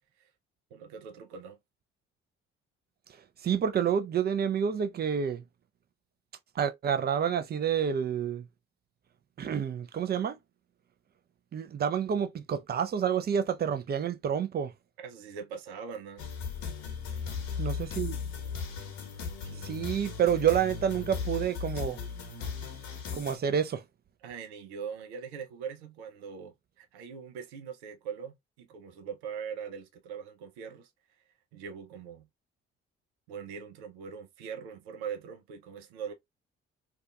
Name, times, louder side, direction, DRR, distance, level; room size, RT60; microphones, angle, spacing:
voice 1, 0.7-1.6 15.0-16.3 17.1-17.2 19.4-19.8 24.2-30.9 31.5-32.3 33.3-36.1, right 7 dB, 80° right, 0.6 m, -42 dB
voice 2, 3.4-5.4 6.6-8.5 9.4-10.4 11.5-14.7 17.6-18.2 19.6-22.0 23.1-23.8, right 8 dB, 30° right, 0.5 m, -28 dB
sound 1, 16.2-23.4, left 6 dB, 65° left, 0.9 m, -37 dB
2.6 x 2.3 x 2.2 m
hypercardioid pair, 50°, 32 cm